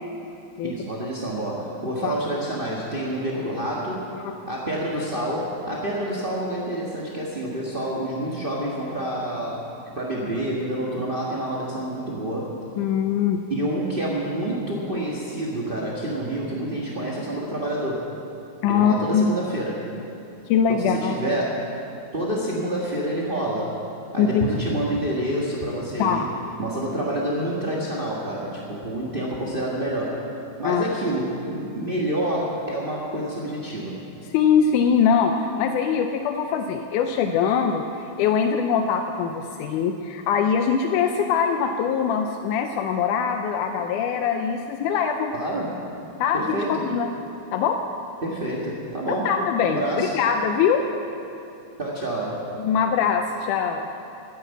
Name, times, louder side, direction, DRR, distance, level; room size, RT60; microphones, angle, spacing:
voice 1, 0.6-4.1 4.5-12.5 13.5-18.1 18.7-19.9 20.7-21.7 22.1-23.8 24.1-26.2 26.6-30.3 30.6-34.1 45.3-45.8 46.3-46.8 48.2-50.2 51.8-52.5, right 1 dB, 50° right, -5 dB, 0.6 m, -28 dB
voice 2, 12.8-13.4 18.6-19.3 20.5-21.4 24.2-24.5 26.0-26.3 30.6-30.8 34.3-37.9 38.2-45.3 46.2-47.1 47.5-47.8 49.1-50.8 52.6-53.9, left 7 dB, 85° left, 5 dB, 2.1 m, -22 dB
12.5 x 10.0 x 8.1 m, 2.8 s
omnidirectional pair, 3.6 m